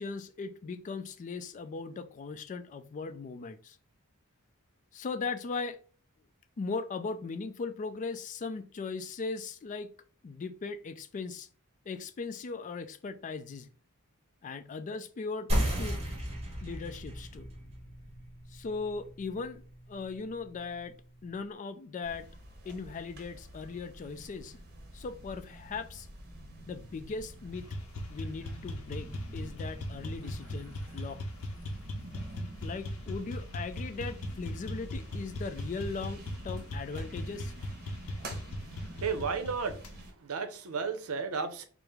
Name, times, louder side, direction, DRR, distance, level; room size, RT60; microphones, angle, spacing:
voice 1, 0.0-3.8 4.9-5.8 6.6-9.9 10.2-11.5 11.9-13.7 14.4-15.5 15.8-16.2 16.6-17.5 18.5-20.9 21.2-22.3 22.7-24.6 24.9-26.1 26.7-27.7 28.1-31.2 32.6-37.5, left 4 dB, 35° left, 0.3 m, -38 dB
sound 1, 15.5-20.6, equal, 30° right, 1.3 m, -35 dB
sound 2, 22.0-40.1, right 1 dB, 45° right, 1.0 m, -48 dB
sound 3, 27.5-40.0, left 1 dB, 70° left, 0.6 m, -39 dB
voice 2, 39.0-39.8 40.2-41.6, right 5 dB, 75° right, 0.6 m, -33 dB
4.7 x 2.0 x 3.3 m
head